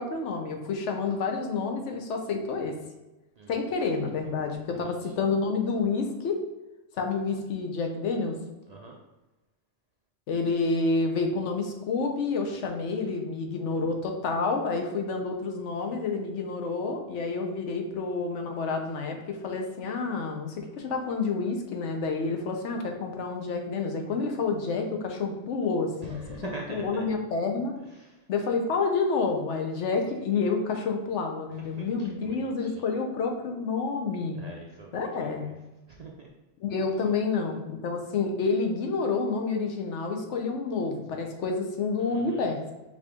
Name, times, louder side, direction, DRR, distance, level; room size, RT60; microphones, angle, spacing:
voice 1, 0.0-2.8 3.5-6.4 7.0-8.4 10.3-27.7 28.3-34.4 34.9-35.4 36.6-42.6, left 4 dB, 85° left, 3 dB, 1.0 m, -29 dB
voice 2, 3.4-3.7 4.5-5.1 8.7-9.0 26.0-27.0 27.8-28.3 31.5-32.9 34.3-35.6 35.9-36.3 42.0-42.5, right 3 dB, 50° right, -1 dB, 0.5 m, -44 dB
4.8 x 2.8 x 3.5 m, 1.1 s
omnidirectional pair, 1.2 m